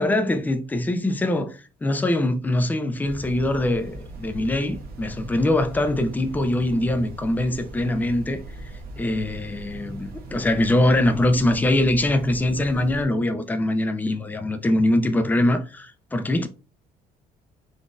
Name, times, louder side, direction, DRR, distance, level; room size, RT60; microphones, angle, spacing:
voice 1, 0.0-8.4 9.0-16.5, left 1 dB, 10° left, 0.4 m, -23 dB
sound 1, 3.0-13.0, right 2 dB, 60° right, 0.9 m, -40 dB
3.7 x 2.5 x 2.4 m
cardioid pair, 110°, 17 cm